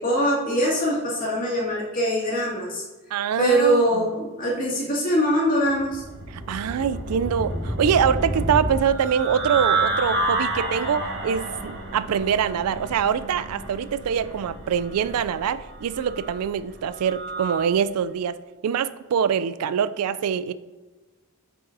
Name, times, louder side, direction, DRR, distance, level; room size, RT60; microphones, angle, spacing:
voice 1, 0.0-2.8 3.4-6.0, equal, 40° left, -5 dB, 2.1 m, -23 dB
voice 2, 3.1-4.0 6.5-20.5, right 7 dB, 85° right, 14 dB, 0.3 m, -24 dB
sound 1, 5.8-17.6, right 2 dB, 50° right, 1.6 m, -29 dB
9.2 x 5.5 x 2.7 m, 1.2 s
head